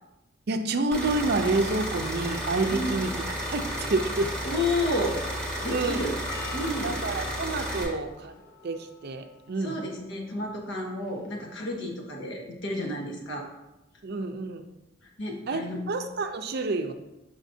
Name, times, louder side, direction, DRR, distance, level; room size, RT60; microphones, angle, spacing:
voice 1, 0.5-3.1 3.4-4.3 5.7-6.1 6.8-8.3 8.6-9.8 14.0-14.6 15.5-16.9, right 3 dB, 55° right, 7 dB, 0.5 m, -28 dB
sound 1, 0.9-7.8, equal, 5° left, 1.4 m, -32 dB
voice 2, 2.7-3.0 4.4-5.2 5.6-6.1 6.5-7.0 9.6-13.5 15.2-15.8, left 1 dB, 70° left, 0 dB, 1.2 m, -31 dB
Percussion, 6.3-11.5, left 4 dB, 50° left, 0.6 m, -48 dB
7.2 x 5.0 x 2.7 m, 0.97 s
head